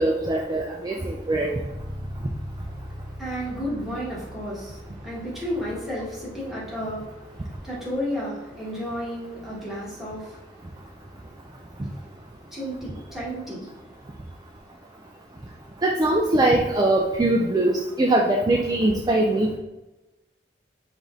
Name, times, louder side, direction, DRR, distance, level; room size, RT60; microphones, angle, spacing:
voice 1, 0.0-1.5 15.8-17.7 18.0-19.6, right 1 dB, 20° right, 0 dB, 0.4 m, -21 dB
Bass guitar, 1.7-11.4, equal, 40° left, 1.2 m, -42 dB
voice 2, 2.8-13.8, equal, ahead, -7 dB, 1.5 m, -33 dB
5.0 x 2.6 x 3.7 m, 1.0 s
head